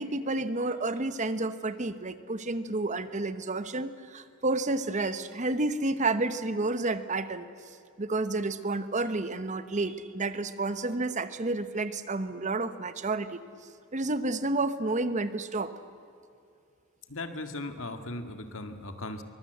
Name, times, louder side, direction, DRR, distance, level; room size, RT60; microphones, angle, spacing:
voice 1, 0.0-7.5 8.0-13.4 13.9-15.7, right 2 dB, 35° right, 12 dB, 1.0 m, -30 dB
voice 2, 17.1-19.2, left 2 dB, 65° left, 8 dB, 1.9 m, -38 dB
23.5 x 22.0 x 8.0 m, 2.5 s
head